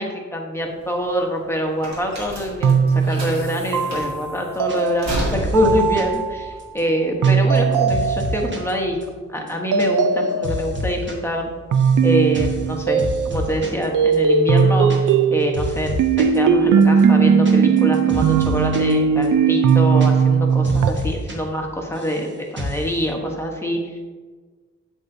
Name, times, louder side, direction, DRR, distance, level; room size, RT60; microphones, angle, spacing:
voice 1, 0.0-9.0 9.3-11.5 12.0-24.2, equal, 10° left, 1 dB, 1.0 m, -25 dB
sound 1, 0.5-7.3, right 1 dB, 60° right, 2.5 m, -32 dB
sound 2, 2.6-6.5 7.2-8.7 9.7-10.9 11.7-13.6 13.9-20.9, right 6 dB, 80° right, 0.6 m, -18 dB
sound 3, 4.7-5.1 5.3-6.2 6.6-8.7 9.0-9.1 9.4-9.9 10.1-11.1 11.4-12.0 12.3-12.7 13.0-13.9 14.1-14.2 14.5-15.3 15.5-16.4 16.8-18.9 19.2-19.3 19.6-20.4 20.6-21.4 21.6-22.2 22.6-22.9, equal, 35° right, 1.4 m, -29 dB
8.2 x 8.0 x 2.7 m, 1.4 s
wide cardioid pair, 135°, 31 cm